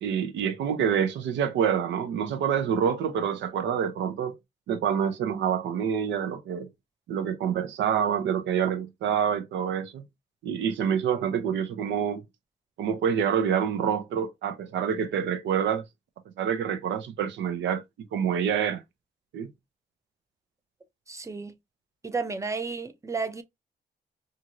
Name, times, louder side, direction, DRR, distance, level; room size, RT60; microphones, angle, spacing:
voice 1, 0.0-4.4 4.7-6.7 7.1-10.0 10.4-12.2 12.8-15.8 16.4-17.8 18.1-18.8 19.3-19.5, right 8 dB, 85° right, 0.6 m, -27 dB
voice 2, 21.1-21.6 22.0-23.4, right 4 dB, 15° right, 0.5 m, -32 dB
2.8 x 2.5 x 2.8 m
cardioid pair, 90°, 18 cm